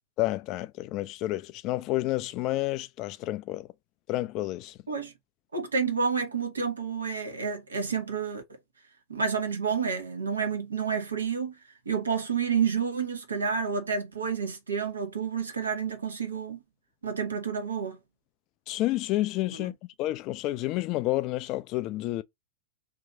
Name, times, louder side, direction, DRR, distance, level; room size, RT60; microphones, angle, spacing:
voice 1, 0.2-3.7 4.1-4.8 18.7-19.7 20.0-22.2, left 17 dB, 40° left, 0.3 m, -30 dB
voice 2, 5.5-8.4 9.1-11.6 11.8-16.6 17.0-18.0 19.5-19.6, right 6 dB, 75° right, 1.0 m, -29 dB
2.8 x 2.7 x 3.8 m
figure-of-eight pair, 90°, 0 cm